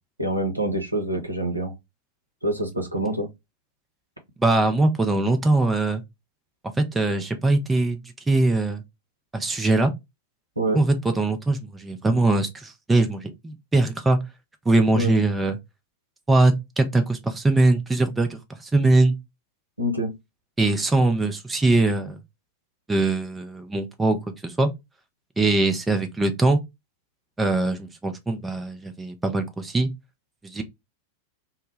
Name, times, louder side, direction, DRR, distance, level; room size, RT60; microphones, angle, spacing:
voice 1, 0.2-1.7 2.4-3.3 10.6-10.8 14.9-15.1 19.8-20.1, right 1 dB, 90° right, 0.6 m, -26 dB
voice 2, 4.4-6.0 6.8-8.0 8.3-8.8 9.3-9.9 10.7-14.2 14.7-15.6 16.3-18.4 18.7-19.1 20.6-22.2 22.9-24.2 24.4-24.7 25.4-26.6 27.4-29.9 30.4-30.6, right 2 dB, 10° right, 0.5 m, -21 dB
2.1 x 2.0 x 3.1 m
figure-of-eight pair, 90°, 0 cm